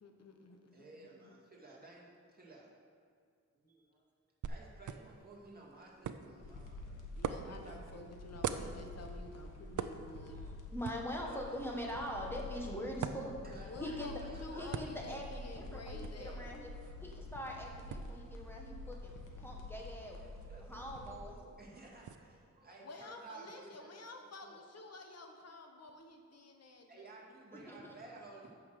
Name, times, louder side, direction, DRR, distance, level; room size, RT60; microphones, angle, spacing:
voice 1, 0.0-1.4 7.1-10.4 13.6-16.5 22.8-27.2, left 2 dB, 55° left, 4 dB, 1.2 m, -51 dB
voice 2, 0.7-2.7 3.5-4.1 4.5-7.1 7.4-8.0 11.2-11.8 13.4-15.1 16.2-16.4 20.2-24.6 26.9-28.5, right 3 dB, 30° right, -3 dB, 2.2 m, -55 dB
sound 1, 4.4-22.1, right 7 dB, 75° right, 0.5 m, -47 dB
sound 2, 6.4-21.2, left 2 dB, 80° left, 1.4 m, -48 dB
voice 3, 10.7-13.3 13.8-14.1 14.5-16.7 17.0-20.2 20.6-21.3 27.5-27.8, equal, 5° left, -1 dB, 1.6 m, -43 dB
9.0 x 6.4 x 6.5 m, 2.2 s
wide cardioid pair, 105°, 31 cm